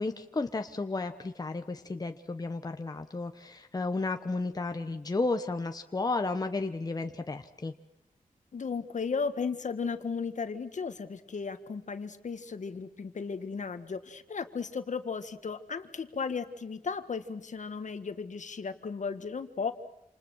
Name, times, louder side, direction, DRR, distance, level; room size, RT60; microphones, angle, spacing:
voice 1, 0.0-7.7, left 3 dB, 25° left, 6 dB, 1.1 m, -33 dB
voice 2, 8.5-19.7, left 5 dB, 60° left, 9 dB, 1.7 m, -35 dB
28.0 x 28.0 x 6.4 m, 0.81 s
wide cardioid pair, 130°, 14 cm